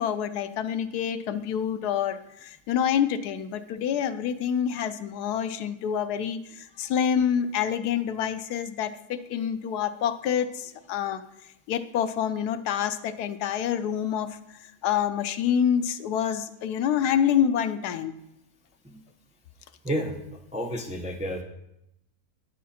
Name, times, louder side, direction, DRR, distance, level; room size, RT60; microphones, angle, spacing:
voice 1, 0.0-11.2 11.7-14.4 14.8-18.2, left 8 dB, 85° left, 11 dB, 1.2 m, -27 dB
voice 2, 19.8-20.2 20.5-21.4, equal, 10° right, 2 dB, 0.3 m, -30 dB
10.0 x 7.4 x 4.2 m, 0.84 s
omnidirectional pair, 1.6 m